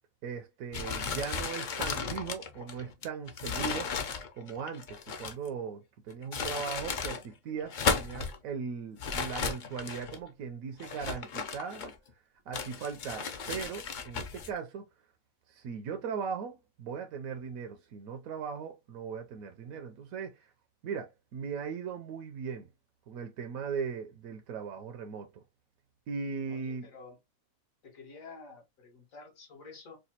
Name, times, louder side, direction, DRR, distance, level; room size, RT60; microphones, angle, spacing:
voice 1, 0.2-4.0 4.3-11.9 12.5-14.8 15.5-20.5 20.8-22.7 23.1-25.4 26.1-26.9, right 6 dB, 80° right, 1.0 m, -38 dB
sound 1, 0.7-5.5 6.1-7.2 7.6-8.4 9.0-10.2 10.8-12.1 12.5-14.5, left 5 dB, 55° left, 0.5 m, -35 dB
voice 2, 26.5-27.2 27.8-30.0, left 4 dB, 70° left, 1.7 m, -50 dB
4.9 x 2.2 x 2.7 m
omnidirectional pair, 1.4 m